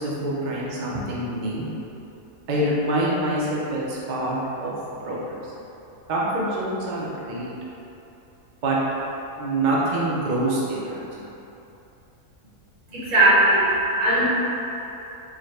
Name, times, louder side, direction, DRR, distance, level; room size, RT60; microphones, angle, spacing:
voice 1, 0.0-1.7 2.5-4.7 5.0-5.5 6.1-7.5 8.6-8.8 9.4-11.0, right 1 dB, 45° right, -6 dB, 0.6 m, -25 dB
voice 2, 12.9-14.2, right 1 dB, 65° right, -9 dB, 1.6 m, -18 dB
4.7 x 2.2 x 4.5 m, 2.9 s
omnidirectional pair, 1.5 m